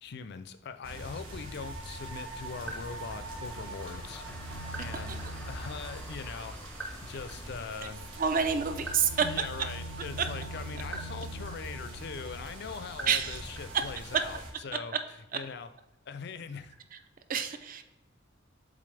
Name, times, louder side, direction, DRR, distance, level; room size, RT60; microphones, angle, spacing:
voice 1, 0.0-4.2 4.8-6.6 7.0-8.1 9.2-15.7 16.1-16.7, left 5 dB, 55° left, 11 dB, 0.4 m, -41 dB
sound 1, 0.8-14.5, right 1 dB, 80° right, 1.5 m, -42 dB
sound 2, 2.5-14.0, equal, 10° left, 0.5 m, -46 dB
voice 2, 8.2-9.1 13.1-13.4 17.3-17.8, right 7 dB, 45° right, 9 dB, 0.5 m, -28 dB
7.6 x 3.8 x 3.3 m, 1.0 s
head